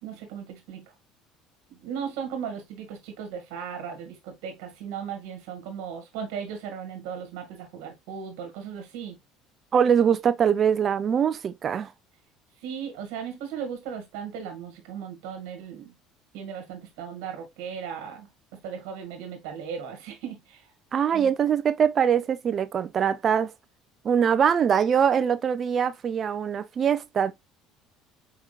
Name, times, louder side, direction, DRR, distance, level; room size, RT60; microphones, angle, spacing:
voice 1, 0.0-0.8 1.7-9.1 12.6-15.9 16.3-20.7 21.1-21.3, right 7 dB, 80° right, 1.6 m, -37 dB
voice 2, 9.7-11.9 20.9-23.5 24.0-27.3, right 8 dB, 40° right, 0.6 m, -23 dB
4.8 x 3.7 x 2.2 m
supercardioid pair, 90°, 0 cm